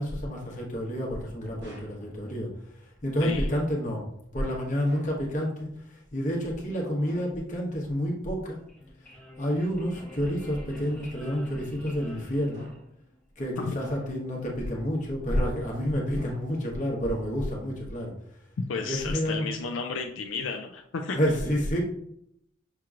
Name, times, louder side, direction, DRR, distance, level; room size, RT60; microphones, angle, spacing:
voice 1, 0.0-4.0 4.3-8.6 9.4-12.7 13.4-18.1 18.8-19.5 21.1-21.8, equal, 40° left, -2 dB, 1.1 m, -29 dB
sound 1, 1.6-2.0 4.9-5.3 7.0-7.4 9.9-10.3 10.8-11.2 12.5-13.0 13.8-14.4 16.1-16.8, right 1 dB, 60° right, 1.4 m, -50 dB
sound 2, 8.5-13.2, left 1 dB, 5° left, 0.9 m, -47 dB
voice 2, 18.7-21.2, left 4 dB, 75° left, 4 dB, 0.4 m, -32 dB
5.9 x 2.9 x 2.4 m, 0.72 s
head